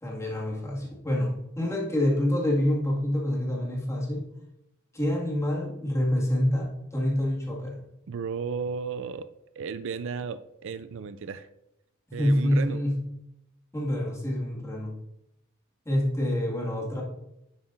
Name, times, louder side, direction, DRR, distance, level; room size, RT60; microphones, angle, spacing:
voice 1, 0.0-4.2 4.9-7.8 12.1-13.0 13.7-14.9 15.9-17.0, left 1 dB, 15° left, -3 dB, 2.0 m, -27 dB
voice 2, 8.1-11.5 12.1-12.8, right 5 dB, 65° right, 13 dB, 0.4 m, -34 dB
10.5 x 7.1 x 2.6 m, 0.88 s
head